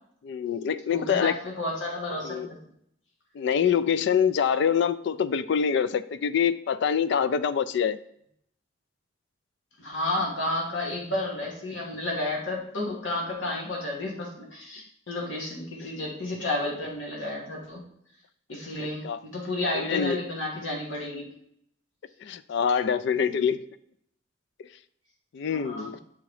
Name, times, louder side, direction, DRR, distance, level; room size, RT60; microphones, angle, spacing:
voice 1, 0.2-1.4 2.2-2.5 3.3-8.0 15.8-15.9 18.8-19.2 19.7-20.2 22.2-23.6 25.3-26.0, left 7 dB, 65° left, 15 dB, 0.3 m, -25 dB
voice 2, 0.9-2.6 9.8-17.8 18.5-21.3 23.2-23.4 25.5-25.9, left 1 dB, 90° left, -2 dB, 1.7 m, -31 dB
7.1 x 3.9 x 4.8 m, 0.70 s
head